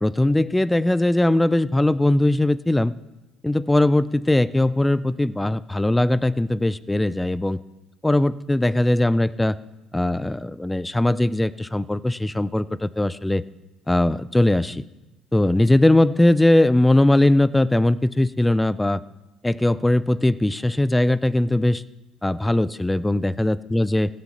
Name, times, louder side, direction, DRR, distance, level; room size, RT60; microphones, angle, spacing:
voice 1, 0.0-2.9 3.4-7.6 8.0-9.6 9.9-13.4 13.9-14.8 15.3-19.0 19.4-21.8 22.2-24.1, left 1 dB, 10° left, 18 dB, 0.5 m, -20 dB
16.0 x 7.5 x 5.6 m, 1.1 s
supercardioid pair, 75°, 0 cm